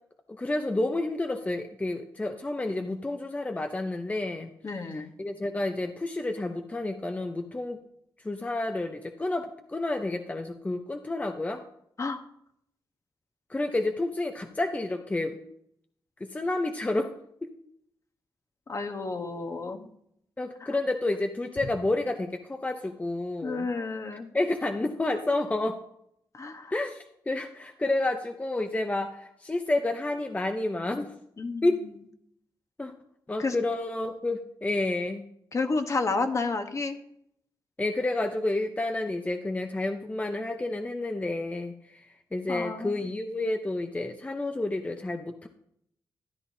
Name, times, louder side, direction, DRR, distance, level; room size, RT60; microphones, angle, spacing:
voice 1, 0.3-4.5 5.2-7.8 8.2-11.6 13.5-15.4 16.2-17.1 20.4-23.7 24.3-25.8 26.7-31.1 31.6-31.8 32.8-32.9 33.3-35.2 37.8-45.5, left 2 dB, 20° left, 5 dB, 0.7 m, -30 dB
voice 2, 4.6-5.1 12.0-12.2 18.7-19.9 20.6-20.7 23.4-24.3 26.3-26.7 31.4-31.7 33.4-33.6 35.5-37.0 42.5-43.0, left 3 dB, 40° left, 6 dB, 1.1 m, -31 dB
13.0 x 10.5 x 2.8 m, 0.72 s
cardioid pair, 95°, 8 cm